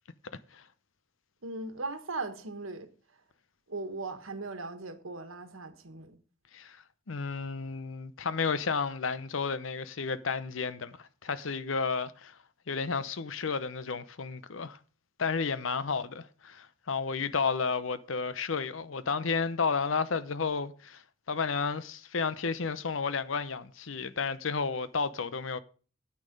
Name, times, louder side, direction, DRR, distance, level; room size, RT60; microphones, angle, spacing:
voice 1, 1.4-2.9 3.7-6.2, right 3 dB, 90° right, 1.5 m, -38 dB
voice 2, 7.1-12.4 12.7-14.8 15.2-25.6, left 5 dB, 75° left, 0.8 m, -32 dB
9.9 x 8.8 x 5.2 m
head